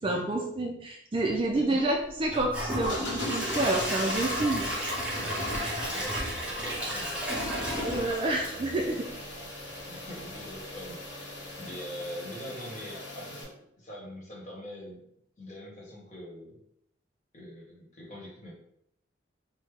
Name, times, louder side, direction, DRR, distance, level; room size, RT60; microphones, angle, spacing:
voice 1, 0.0-4.6 5.5-5.9 7.8-9.1, right 2 dB, 25° right, 1 dB, 0.3 m, -29 dB
Gurgling / Toilet flush / Trickle dribble, 2.3-9.3 9.7-9.8 10.3-10.4, equal, 5° right, 0.8 m, -33 dB
sound 1, 2.8-13.4, left 1 dB, 80° left, 0.9 m, -40 dB
voice 2, 5.5-8.1 9.8-15.0 15.4-16.6 17.3-18.5, equal, 40° left, -4 dB, 1.0 m, -44 dB
3.5 x 2.0 x 3.2 m, 0.73 s
head